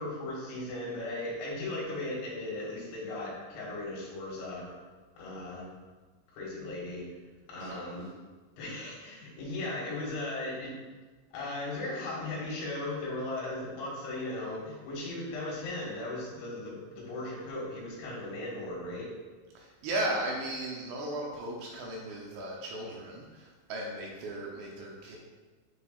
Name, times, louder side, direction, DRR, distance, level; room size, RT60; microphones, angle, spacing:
voice 1, 0.0-4.7 5.2-5.6 6.3-7.0 7.5-8.1 8.6-10.7 11.3-19.1, left 2 dB, 70° left, -5 dB, 3.9 m, -37 dB
voice 2, 19.5-25.2, right 1 dB, 75° right, -2 dB, 2.8 m, -36 dB
9.9 x 4.7 x 2.4 m, 1.3 s
omnidirectional pair, 5.6 m